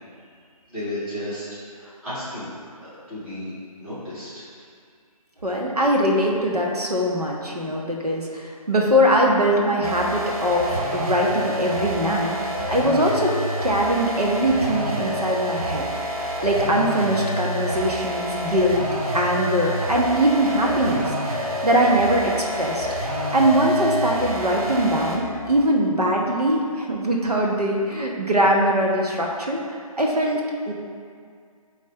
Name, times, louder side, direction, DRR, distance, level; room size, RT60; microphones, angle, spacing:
voice 1, 0.7-1.5 1.7-2.5 2.8-3.5 3.8-4.4, left 1 dB, 5° right, -13 dB, 1.2 m, -33 dB
voice 2, 5.4-12.4 12.7-13.3 13.6-18.9 19.1-21.1 21.6-29.6 30.0-30.4 30.7-30.8, equal, 90° right, -1 dB, 1.3 m, -22 dB
sound 1, 9.8-25.3, equal, 70° right, 1.3 m, -27 dB
8.8 x 3.2 x 4.4 m, 2.2 s
figure-of-eight pair, 155°, 19 cm